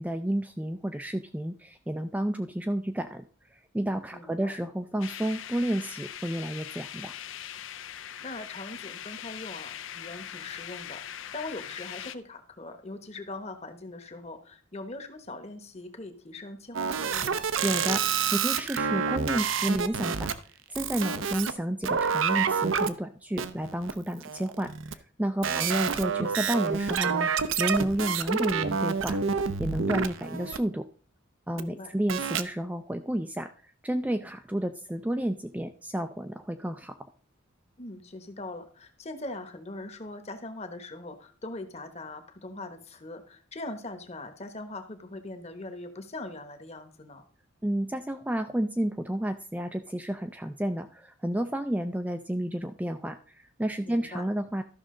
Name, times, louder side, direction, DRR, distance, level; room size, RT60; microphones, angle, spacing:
voice 1, 0.0-3.2 3.5-7.1 17.6-18.0 18.3-20.3 20.7-30.9 31.5-36.9 47.6-54.6, right 1 dB, 5° right, 7 dB, 0.4 m, -31 dB
voice 2, 4.1-4.6 8.2-17.5 25.5-25.8 31.5-31.9 37.8-47.2 53.8-54.2, left 2 dB, 30° left, 8 dB, 1.1 m, -41 dB
sound 1, 5.0-12.2, left 10 dB, 70° left, 0.5 m, -41 dB
sound 2, 16.7-20.3 20.8-21.5 21.8-22.9 23.4-23.9 24.2-24.9 25.4-30.6 31.6-31.7 32.1-32.4, right 6 dB, 75° right, 0.7 m, -28 dB
13.0 x 6.1 x 3.8 m, 0.42 s
head